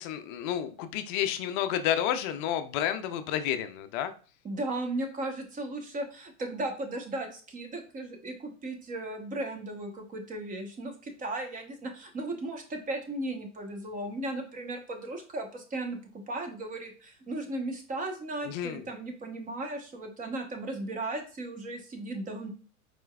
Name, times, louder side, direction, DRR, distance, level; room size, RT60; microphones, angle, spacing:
voice 1, 0.0-4.1 18.4-18.9, left 10 dB, 35° left, 9 dB, 0.5 m, -30 dB
voice 2, 4.4-16.0 16.3-22.5, right 2 dB, 20° right, 4 dB, 1.0 m, -36 dB
4.4 x 4.4 x 2.3 m, 0.39 s
hypercardioid pair, 105°, 42 cm